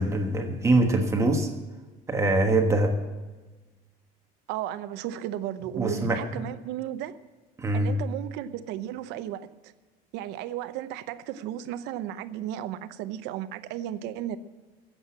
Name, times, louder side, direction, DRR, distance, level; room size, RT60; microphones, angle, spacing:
voice 1, 0.0-1.5 2.1-2.9 5.8-6.4 7.6-7.9, right 2 dB, 15° right, 4 dB, 1.4 m, -23 dB
voice 2, 4.5-7.1 7.7-9.5 10.1-14.4, right 12 dB, 70° right, 12 dB, 0.8 m, -34 dB
15.0 x 8.0 x 7.3 m, 1.3 s
cardioid pair, 155°, 18 cm